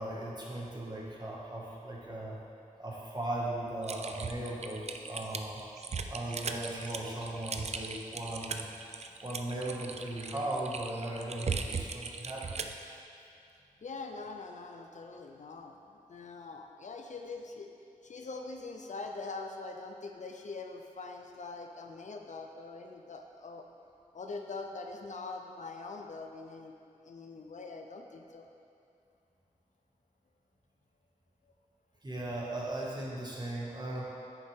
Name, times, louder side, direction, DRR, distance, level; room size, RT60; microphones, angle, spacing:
voice 1, 0.0-2.4 2.8-5.6 5.9-8.7 9.2-12.6 32.0-34.0, right 1 dB, 30° right, -5 dB, 2.0 m, -37 dB
Typing, 3.8-12.8, right 5 dB, 50° right, 0.5 m, -38 dB
voice 2, 13.8-15.8 16.1-17.7 18.0-23.6 24.1-26.7 27.0-28.5 31.4-31.5, left 3 dB, 60° left, 3 dB, 0.7 m, -43 dB
9.5 x 7.1 x 3.7 m, 2.5 s
cardioid pair, 60°, 14 cm